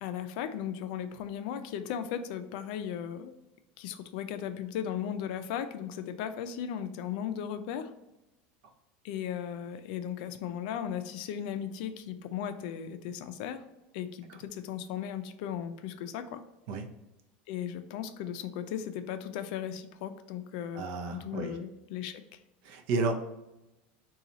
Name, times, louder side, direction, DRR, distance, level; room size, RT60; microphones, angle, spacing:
voice 1, 0.0-3.3 3.8-7.9 9.0-13.6 13.9-16.4 17.5-20.8 21.1-22.2, left 9 dB, 60° left, 9 dB, 0.4 m, -36 dB
voice 2, 20.7-21.5 22.6-23.1, right 3 dB, 60° right, 5 dB, 0.6 m, -31 dB
4.0 x 2.3 x 3.8 m, 0.95 s
supercardioid pair, 165°, 5 cm